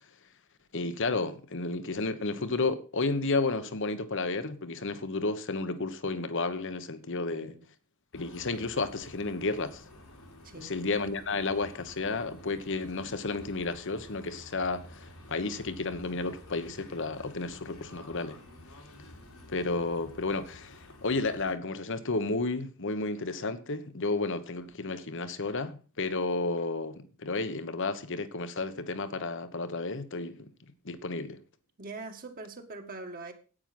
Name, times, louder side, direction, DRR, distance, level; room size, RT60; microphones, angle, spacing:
voice 1, 0.7-7.5 8.1-9.8 10.6-18.4 19.5-30.5 30.8-31.4, left 3 dB, 55° left, 1.2 m, -32 dB
voice 2, 7.1-7.6 10.4-10.8 31.8-33.3, right 3 dB, 40° right, 1.8 m, -43 dB
sound 1, 8.1-21.5, left 1 dB, 85° left, 3.8 m, -51 dB
10.0 x 9.0 x 6.0 m
head